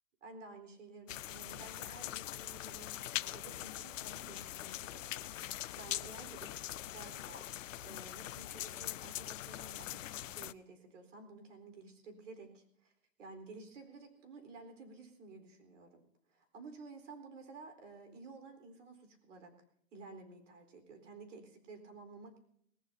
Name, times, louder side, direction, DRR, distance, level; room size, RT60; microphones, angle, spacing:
voice 1, 0.2-12.9 13.2-16.0 16.3-19.5 19.9-22.4, right 3 dB, 65° right, 6 dB, 4.3 m, -53 dB
sound 1, 1.1-10.5, left 13 dB, 70° left, 0.6 m, -42 dB
20.0 x 19.0 x 2.8 m, 0.69 s
hypercardioid pair, 165°, 40 cm